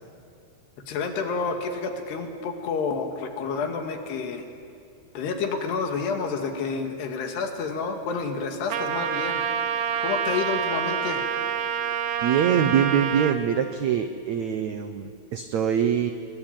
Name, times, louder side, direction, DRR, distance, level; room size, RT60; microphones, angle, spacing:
voice 1, 0.9-4.4 5.1-9.4 10.0-11.2, left 5 dB, 75° left, 5 dB, 4.2 m, -29 dB
Trumpet, 8.7-13.4, right 8 dB, 65° right, 2.5 m, -27 dB
voice 2, 12.2-16.1, right 8 dB, 85° right, 8 dB, 1.6 m, -24 dB
30.0 x 22.0 x 9.1 m, 2.5 s
omnidirectional pair, 4.9 m